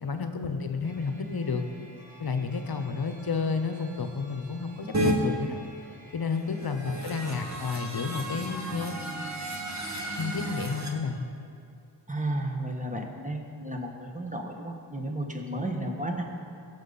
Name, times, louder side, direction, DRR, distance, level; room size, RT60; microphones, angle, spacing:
voice 1, 0.0-1.6 2.2-5.6 6.1-9.0 10.1-11.3, left 4 dB, 50° left, 7 dB, 1.0 m, -31 dB
sound 1, 0.8-6.8, equal, 65° right, 2.7 m, -53 dB
sound 2, 4.9-5.1 6.5-10.9, equal, 35° right, 1.5 m, -32 dB
voice 2, 12.1-16.3, right 1 dB, 15° right, 2 dB, 1.5 m, -33 dB
16.5 x 7.0 x 4.2 m, 2.5 s
cardioid pair, 45°, 47 cm